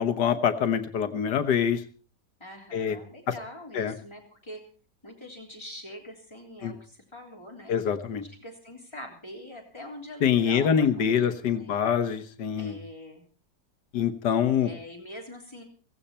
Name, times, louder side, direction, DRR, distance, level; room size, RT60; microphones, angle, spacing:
voice 1, 0.0-1.8 2.7-3.0 3.7-4.0 6.6-6.8 7.7-8.2 10.2-12.8 13.9-14.7, left 8 dB, 80° left, 9 dB, 1.8 m, -25 dB
voice 2, 2.4-4.6 5.0-7.8 8.3-11.8 12.5-13.2 14.6-15.6, left 1 dB, 15° left, 0 dB, 3.7 m, -44 dB
17.0 x 15.5 x 4.4 m, 0.39 s
omnidirectional pair, 1.8 m